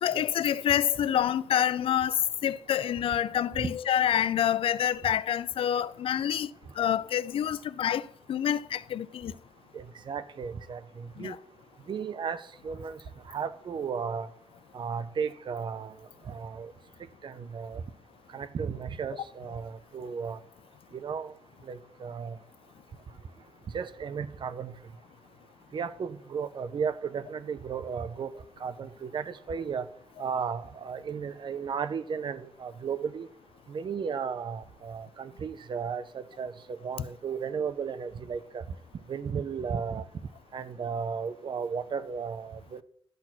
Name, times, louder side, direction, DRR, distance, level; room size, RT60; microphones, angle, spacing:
voice 1, 0.0-6.5 6.8-9.3 11.2-11.4, left 10 dB, 85° left, 0.4 m, -27 dB
voice 2, 9.7-11.4 11.9-13.0 13.3-14.3 14.7-15.9 16.3-16.7 17.2-17.8 18.3-20.4 20.9-21.3 21.7-22.4 23.7-24.7 25.7-28.3 28.6-29.9 30.2-33.3 33.7-38.6 39.1-40.0 40.5-42.8, right 6 dB, 60° right, 0.6 m, -34 dB
12.0 x 4.2 x 6.0 m
wide cardioid pair, 120°, 9 cm